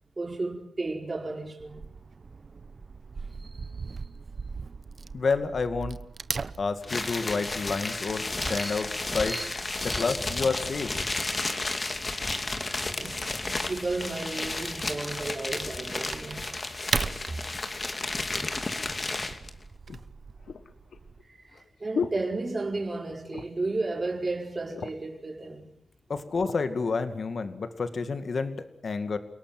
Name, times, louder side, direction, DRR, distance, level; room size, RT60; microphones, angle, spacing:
voice 1, 0.2-1.8 3.4-4.1 8.5-8.8 9.2-9.5 9.7-10.2 12.7-16.5 17.3-17.4 21.2-25.7, right 2 dB, 35° right, 5.0 m, -34 dB
Wood / Tearing, 1.6-21.2, right 4 dB, 55° right, 1.0 m, -40 dB
voice 2, 5.1-6.0 6.6-8.9 9.1-9.4 9.8-10.9 26.1-29.2, left 4 dB, 65° left, 2.3 m, -29 dB
sound 1, 6.8-19.5, left 2 dB, 35° left, 2.7 m, -32 dB
sound 2, 18.9-19.0 19.9-23.0 23.3-23.7 24.1-24.2 24.5-25.2 25.9-26.6 27.3-27.5, left 6 dB, 85° left, 1.6 m, -37 dB
29.0 x 18.0 x 9.2 m
wide cardioid pair, 80°, 0 cm